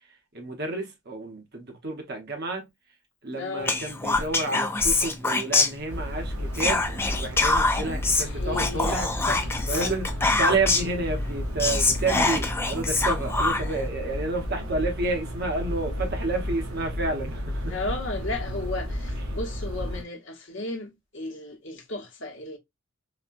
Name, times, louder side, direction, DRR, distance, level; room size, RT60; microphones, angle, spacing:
voice 1, 0.3-2.7 3.2-9.1 9.7-10.1 10.4-17.8, right 3 dB, 45° right, 0.9 m, -30 dB
voice 2, 3.3-3.8 8.1-9.4 9.7-9.9 17.6-22.6, left 2 dB, 55° left, 0.9 m, -34 dB
Whispering, 3.6-6.2 6.5-11.0 11.3-11.4 11.6-13.8, left 3 dB, 10° left, 0.3 m, -25 dB
sound 1, 5.9-20.0, equal, 80° right, 1.0 m, -32 dB
4.1 x 2.2 x 2.5 m
head